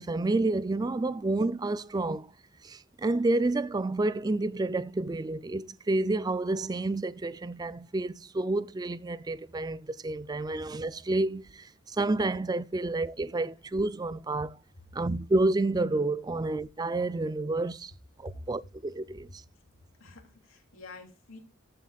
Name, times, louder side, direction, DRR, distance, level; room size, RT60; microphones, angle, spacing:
voice 1, 0.0-2.3 2.6-14.6 14.9-17.9 18.2-19.4, right 2 dB, 20° right, 0.4 m, -29 dB
voice 2, 20.0-21.4, left 3 dB, 85° left, 2.8 m, -47 dB
14.5 x 7.4 x 2.3 m
head